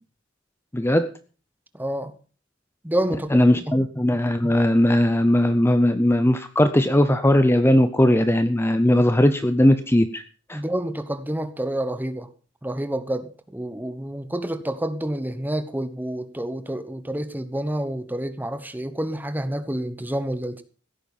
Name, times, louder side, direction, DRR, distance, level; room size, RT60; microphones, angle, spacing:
voice 1, 0.7-1.1 3.3-10.2 10.5-10.6, left 1 dB, 10° left, 0.7 m, -18 dB
voice 2, 1.7-2.1 2.8-3.8 10.5-12.3 12.6-20.6, right 1 dB, 10° right, 1.1 m, -28 dB
16.0 x 9.1 x 5.5 m
head